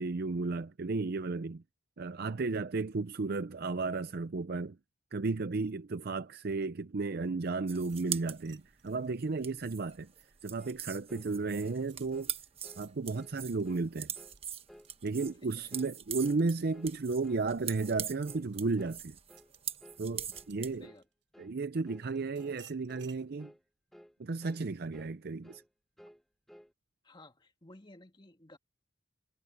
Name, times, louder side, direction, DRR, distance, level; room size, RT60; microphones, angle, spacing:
voice 1, 0.0-1.6 2.0-4.8 5.1-10.1 10.4-12.3 12.8-14.1 15.0-19.2 20.0-20.9 21.4-23.5 24.2-25.6, right 3 dB, 55° right, 0.6 m, -34 dB
sound 1, 7.7-20.9, right 9 dB, 30° right, 1.3 m, -42 dB
sound 2, 7.8-10.6 11.1-21.2 21.8-23.3, right 10 dB, 80° right, 4.8 m, -62 dB
sound 3, 10.6-10.8 11.1-11.3 11.6-11.8 12.1-12.3 12.6-12.9 13.1-13.4 13.7-13.9 14.2-14.4 14.7-14.9 15.2-15.4 15.7-15.9 16.2-16.4 16.7-17.0 17.2-17.5 17.8-18.0 18.3-18.5 18.8-19.0 19.3-19.5 19.8-20.0 20.3-20.5 20.8-21.1 21.3-21.6 21.9-22.1 22.4-22.6 22.9-23.1 23.4-23.6 23.9-24.2 24.4-24.6 24.9-25.2 25.4-25.7 26.0-26.7, equal, ahead, 1.3 m, -56 dB
voice 2, 15.4-15.8 20.8-21.0 27.0-28.6, left 1 dB, 25° left, 2.1 m, -55 dB
head